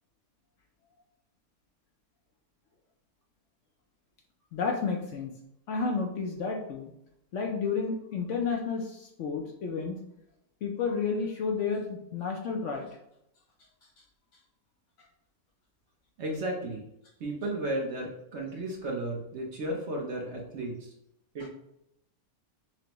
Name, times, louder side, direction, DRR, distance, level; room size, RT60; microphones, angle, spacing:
voice 1, 4.5-5.3 5.7-6.9 7.3-10.0 10.6-12.9 21.4-21.5, left 5 dB, 65° left, 1 dB, 0.8 m, -31 dB
voice 2, 16.2-16.8 17.2-20.7 21.3-21.5, right 1 dB, 55° right, -1 dB, 1.0 m, -33 dB
6.0 x 2.1 x 2.9 m, 0.80 s
omnidirectional pair, 1.6 m